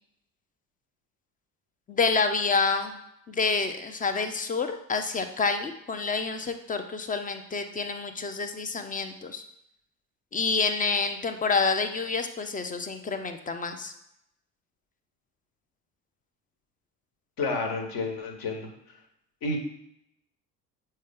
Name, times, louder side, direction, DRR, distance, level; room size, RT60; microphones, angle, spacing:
voice 1, 1.9-3.0 3.3-9.4 10.3-13.9, left 4 dB, 15° left, 8 dB, 0.6 m, -28 dB
voice 2, 17.4-18.7 19.4-19.6, left 3 dB, 45° left, 3 dB, 1.4 m, -30 dB
7.5 x 4.4 x 3.6 m, 0.78 s
figure-of-eight pair, 55°, 50 cm